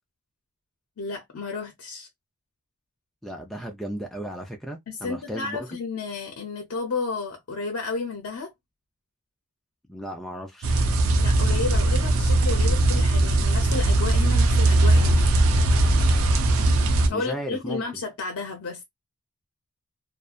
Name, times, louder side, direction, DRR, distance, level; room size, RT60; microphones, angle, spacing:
voice 1, 1.0-2.1 4.9-8.5 11.2-15.4 17.1-18.8, left 4 dB, 80° left, 0.6 m, -32 dB
voice 2, 3.2-5.7 9.9-10.8 17.1-17.8, equal, ahead, 0.4 m, -35 dB
sound 1, 10.6-17.1, right 2 dB, 80° right, 0.5 m, -20 dB
2.7 x 2.1 x 2.3 m
head